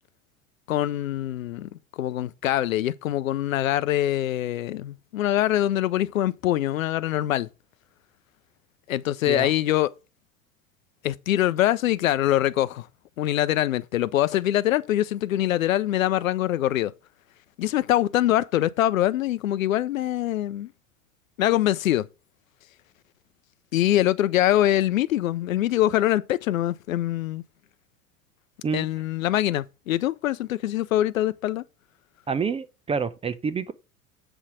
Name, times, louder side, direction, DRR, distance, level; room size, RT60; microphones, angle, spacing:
voice 1, 0.7-1.7 2.0-7.5 8.9-9.9 11.0-12.9 13.2-16.9 17.6-20.7 21.4-22.1 23.7-27.4 28.7-31.6, left 13 dB, 70° left, 0.7 m, -24 dB
voice 2, 32.3-33.7, right 5 dB, 15° right, 0.5 m, -28 dB
8.1 x 5.6 x 4.7 m
figure-of-eight pair, 85°, 42 cm